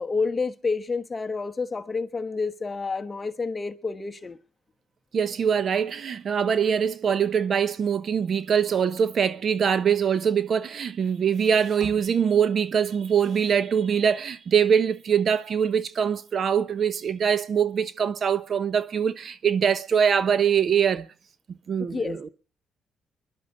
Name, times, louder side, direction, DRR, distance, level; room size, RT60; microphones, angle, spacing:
voice 1, 0.0-4.4 21.8-22.2, left 4 dB, 25° left, 1.2 m, -29 dB
voice 2, 5.1-21.1 21.7-22.3, right 7 dB, 55° right, 1.0 m, -23 dB
28.0 x 11.5 x 3.9 m
cardioid pair, 90°, 0 cm